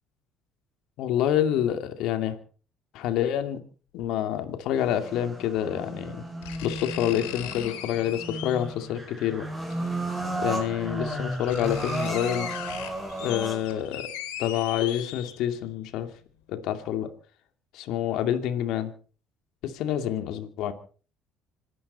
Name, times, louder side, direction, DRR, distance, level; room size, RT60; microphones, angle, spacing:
voice 1, 1.0-2.4 2.9-3.6 3.9-6.2 6.6-9.5 10.4-12.5 13.2-14.1 14.4-16.1 16.5-17.1 17.7-18.9 19.6-20.7, left 10 dB, 70° left, 8 dB, 2.4 m, -27 dB
sound 1, 4.0-4.1 5.6-5.7 6.4-8.8 10.2-10.3 10.9-11.0 11.2-15.7 16.1-16.2, left 11 dB, 90° left, 2.6 m, -39 dB
sound 2, 4.8-13.8, right 1 dB, 10° right, 6.8 m, -34 dB
26.0 x 12.5 x 4.3 m, 0.40 s
supercardioid pair, 80°, 0 cm